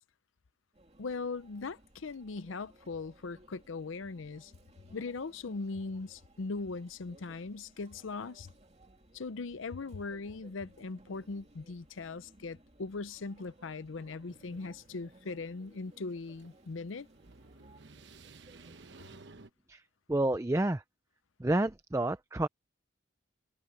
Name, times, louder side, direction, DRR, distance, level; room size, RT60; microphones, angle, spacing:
Conversation / Chatter / Crowd, 0.7-19.2, right 1 dB, 35° right, 2.4 m, -61 dB
voice 1, 1.0-4.5 4.9-8.5 9.1-17.1, left 3 dB, 80° left, 0.6 m, -40 dB
sound 1, 14.3-19.5, right 3 dB, 60° right, 1.1 m, -56 dB
voice 2, 20.1-20.8 21.4-22.5, right 1 dB, 15° right, 0.4 m, -29 dB
head